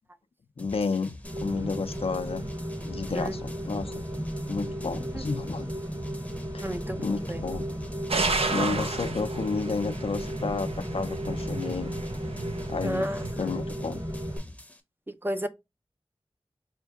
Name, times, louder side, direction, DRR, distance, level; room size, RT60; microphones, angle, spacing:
voice 1, 0.6-2.5 2.8-4.0 4.5-5.7 6.5-7.7 8.0-8.1 8.5-11.9 12.7-13.1 13.4-14.0, left 4 dB, 75° left, 0.4 m, -31 dB
sound 1, 0.6-14.8, left 1 dB, 15° left, 0.7 m, -45 dB
Rain, 1.2-14.4, equal, 40° right, 1.4 m, -35 dB
voice 2, 6.6-7.4 12.8-13.2 15.1-15.5, equal, 20° right, 0.4 m, -32 dB
sound 2, 8.1-13.3, right 3 dB, 80° right, 0.6 m, -32 dB
4.4 x 2.1 x 3.5 m
wide cardioid pair, 45°, 10 cm